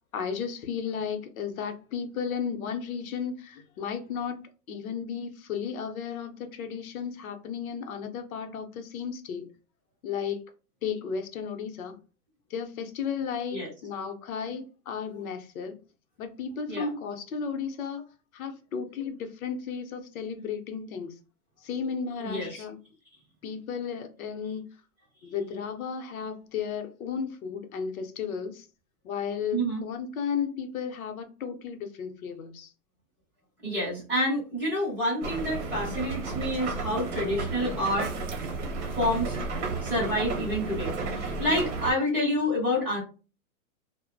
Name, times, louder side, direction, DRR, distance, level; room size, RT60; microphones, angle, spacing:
voice 1, 0.1-9.5 10.0-10.4 10.8-12.0 12.5-15.8 16.2-18.1 18.3-21.1 21.6-22.8 23.4-24.7 25.2-28.7 29.0-32.7, left 6 dB, 65° left, 0.7 m, -34 dB
voice 2, 22.2-22.6 29.5-29.8 33.6-38.1 38.9-39.4 39.8-43.0, left 1 dB, 5° right, 0.6 m, -28 dB
sound 1, 35.2-41.9, right 3 dB, 50° right, 0.7 m, -33 dB
2.6 x 2.1 x 2.3 m
hypercardioid pair, 170°, 45 cm